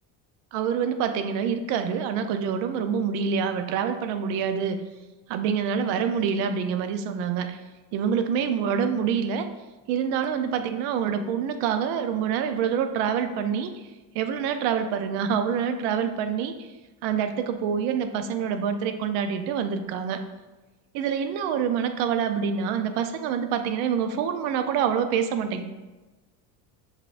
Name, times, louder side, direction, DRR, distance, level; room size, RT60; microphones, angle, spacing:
voice 1, 0.5-4.8 5.3-7.6 7.9-9.5 9.9-13.9 14.1-16.7 17.0-20.2 20.9-25.6, right 7 dB, 90° right, 8 dB, 0.5 m, -26 dB
5.5 x 3.6 x 2.4 m, 1.2 s
cardioid pair, 140°, 42 cm